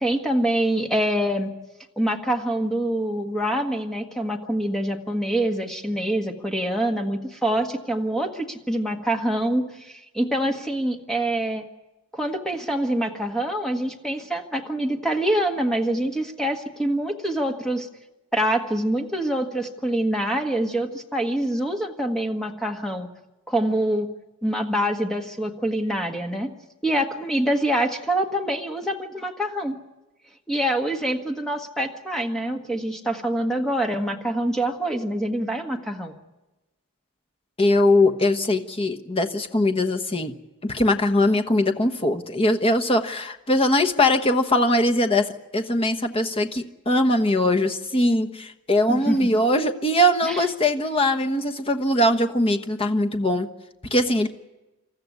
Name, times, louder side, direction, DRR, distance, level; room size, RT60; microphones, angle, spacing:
voice 1, 0.0-1.5 2.0-11.7 12.1-17.9 18.3-23.1 23.5-24.1 24.4-26.5 26.8-29.8 30.5-36.1 48.9-49.2 50.2-50.4, right 1 dB, ahead, 3 dB, 1.7 m, -25 dB
voice 2, 37.6-40.3 40.6-53.5 53.9-54.3, left 1 dB, 25° left, 5 dB, 1.2 m, -21 dB
27.5 x 14.0 x 9.6 m, 1.0 s
head